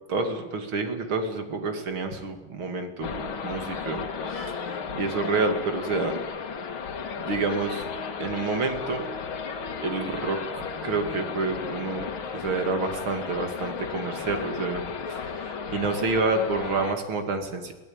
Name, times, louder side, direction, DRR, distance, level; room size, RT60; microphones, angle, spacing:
voice 1, 0.1-4.0 4.3-6.1 7.2-7.9 8.2-9.1 9.8-17.7, right 3 dB, 75° right, 6 dB, 3.2 m, -29 dB
sound 1, 3.0-16.9, left 5 dB, 75° left, 2.5 m, -34 dB
24.0 x 17.0 x 8.9 m, 1.2 s
omnidirectional pair, 2.3 m